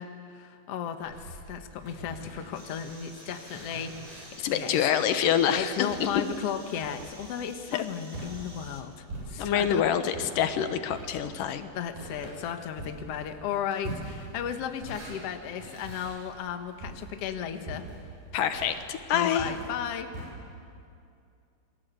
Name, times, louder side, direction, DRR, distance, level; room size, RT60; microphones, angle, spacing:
voice 1, 0.0-4.9 5.5-9.8 11.8-17.8 19.1-20.1, left 8 dB, 55° left, 6 dB, 2.2 m, -35 dB
sound 1, 1.0-9.7 10.1-20.3, right 2 dB, 80° right, 9.8 m, -44 dB
sound 2, 2.5-8.8, right 1 dB, 10° right, 2.1 m, -51 dB
voice 2, 4.4-6.1 7.7-7.8 9.4-11.7 18.3-19.5, left 9 dB, 85° left, 8 dB, 2.8 m, -26 dB
29.0 x 22.0 x 8.2 m, 2.4 s
omnidirectional pair, 3.7 m